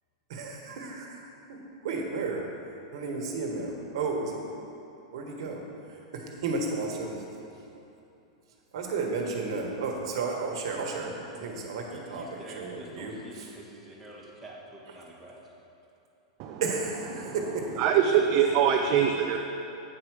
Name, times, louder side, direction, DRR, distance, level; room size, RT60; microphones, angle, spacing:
voice 1, 0.3-1.6 1.8-2.4 2.9-4.4 5.1-5.6 5.9-7.2 8.7-12.2 12.5-13.5 16.6-17.7, right 4 dB, 70° right, 1 dB, 1.4 m, -33 dB
voice 2, 11.9-15.5, right 1 dB, ahead, -6 dB, 1.5 m, -47 dB
voice 3, 17.8-19.4, right 8 dB, 45° right, 2 dB, 0.5 m, -23 dB
8.7 x 4.7 x 6.3 m, 2.9 s
hypercardioid pair, 135°, 3 cm